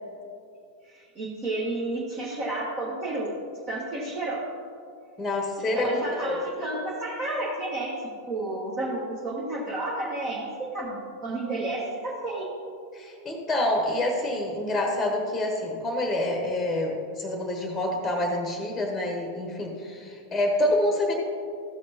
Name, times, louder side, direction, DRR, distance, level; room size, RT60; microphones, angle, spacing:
voice 1, 0.8-3.3 3.7-4.5 5.7-8.0 8.3-12.5, right 2 dB, 30° right, -4 dB, 1.2 m, -31 dB
voice 2, 5.2-6.4 12.9-21.1, left 1 dB, 5° left, 1 dB, 1.2 m, -27 dB
13.5 x 6.5 x 2.8 m, 2.4 s
figure-of-eight pair, 90°, 0 cm